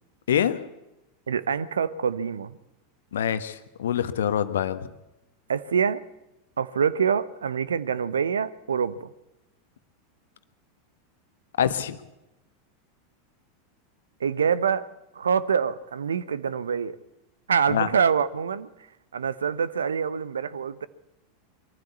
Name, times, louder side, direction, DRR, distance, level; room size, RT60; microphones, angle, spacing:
voice 1, 0.3-0.6 3.1-4.9 11.6-12.0 17.7-17.9, left 9 dB, 70° left, 12 dB, 1.3 m, -25 dB
voice 2, 1.3-2.6 5.5-6.0 6.6-9.1 14.2-14.8 15.1-17.0 17.5-18.7 19.1-20.9, right 6 dB, 75° right, 17 dB, 0.8 m, -25 dB
22.5 x 14.0 x 8.3 m, 0.94 s
figure-of-eight pair, 85°, 0 cm